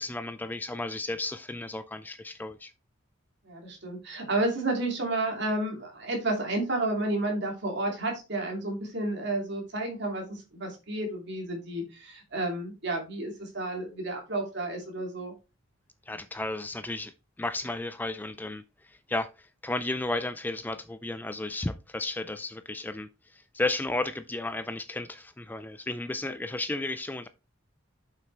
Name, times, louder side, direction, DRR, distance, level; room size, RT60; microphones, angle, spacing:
voice 1, 0.0-2.7 16.1-27.3, left 2 dB, 10° left, 0.3 m, -33 dB
voice 2, 3.4-15.3, right 2 dB, 55° right, 2.5 m, -31 dB
7.2 x 5.8 x 3.2 m
head